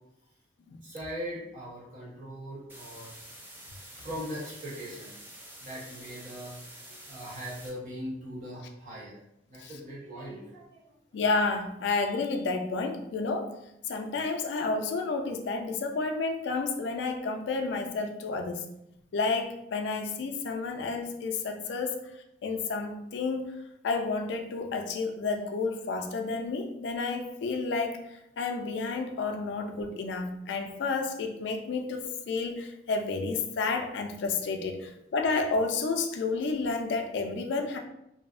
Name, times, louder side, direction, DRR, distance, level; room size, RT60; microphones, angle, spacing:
voice 1, 0.8-3.2 4.0-5.1 5.6-9.2 9.5-10.9, equal, 45° right, -7 dB, 1.0 m, -40 dB
sound 1, 2.7-7.7, right 1 dB, 10° right, 0.4 m, -48 dB
voice 2, 11.1-13.6 13.9-18.7 19.1-22.0 22.4-23.5 23.8-37.8, left 4 dB, 65° left, 4 dB, 0.3 m, -31 dB
2.6 x 2.0 x 2.4 m, 0.81 s
head